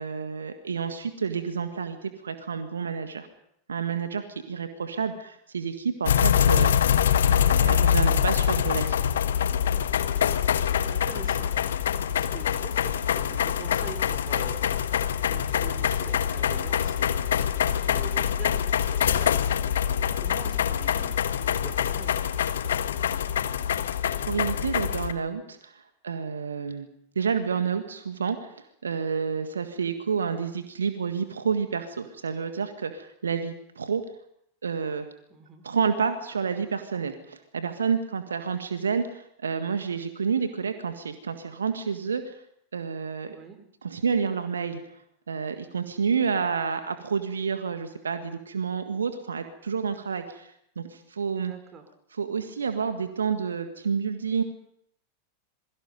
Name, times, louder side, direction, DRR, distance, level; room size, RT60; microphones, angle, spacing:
voice 1, 0.0-3.3 3.7-6.8 7.2-9.0 23.9-26.9 27.2-34.0 34.6-35.1 35.6-42.4 42.7-43.4 43.8-44.8 45.3-51.5 52.1-54.4, right 6 dB, 70° right, 8 dB, 1.7 m, -29 dB
sound 1, 6.1-25.1, left 9 dB, 65° left, 1.4 m, -24 dB
voice 2, 10.9-14.7 15.1-17.2 17.8-18.6 18.9-19.4 20.1-22.1 35.3-35.6 43.3-43.6 51.5-51.9, right 6 dB, 25° right, 8 dB, 3.8 m, -44 dB
27.5 x 22.5 x 5.4 m, 0.71 s
figure-of-eight pair, 90°, 0 cm